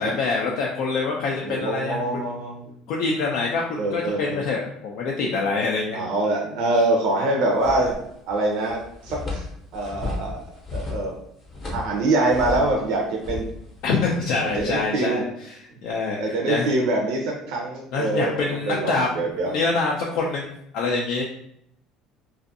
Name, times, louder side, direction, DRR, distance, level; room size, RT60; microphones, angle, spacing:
voice 1, 0.0-2.0 2.9-6.0 13.8-16.7 17.9-19.1 19.5-21.2, left 4 dB, 60° left, -1 dB, 0.4 m, -25 dB
voice 2, 1.4-2.7 3.8-4.4 5.9-8.0 8.3-9.5 9.7-10.4 10.7-11.1 11.7-13.5 14.4-15.2 16.2-19.5, right 2 dB, 60° right, -1 dB, 0.5 m, -24 dB
sound 1, 7.5-8.3 8.6-12.8 13.2-14.9, left 2 dB, 25° left, 0.7 m, -34 dB
2.5 x 2.4 x 2.6 m, 0.74 s
cardioid pair, 155°, 0 cm